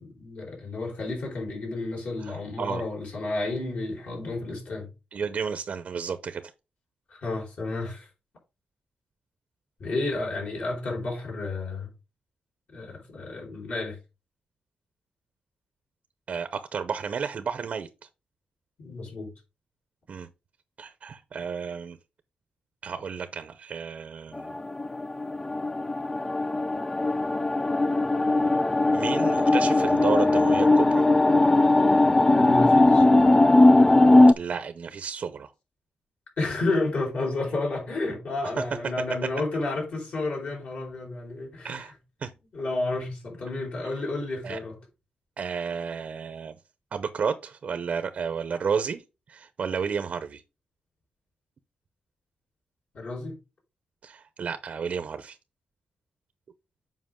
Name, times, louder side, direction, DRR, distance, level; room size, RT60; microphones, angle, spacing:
voice 1, 0.0-4.9 7.1-8.1 9.8-11.9 12.7-14.0 18.8-19.3 32.4-33.0 36.4-41.9 42.5-44.8 52.9-53.4, left 2 dB, 55° left, 4.7 m, -31 dB
voice 2, 2.2-2.8 5.1-6.5 16.3-17.9 20.1-20.3 20.8-22.0 22.8-24.5 28.9-31.0 34.3-35.5 38.6-38.7 39.2-39.3 41.6-41.9 42.2-42.3 44.4-44.6 45.4-46.6 46.9-49.0 49.3-50.4 54.0-55.4, right 6 dB, 50° right, 0.7 m, -32 dB
sound 1, 24.3-34.3, left 2 dB, 15° left, 0.3 m, -19 dB
7.6 x 5.4 x 3.7 m
wide cardioid pair, 150°, 3 cm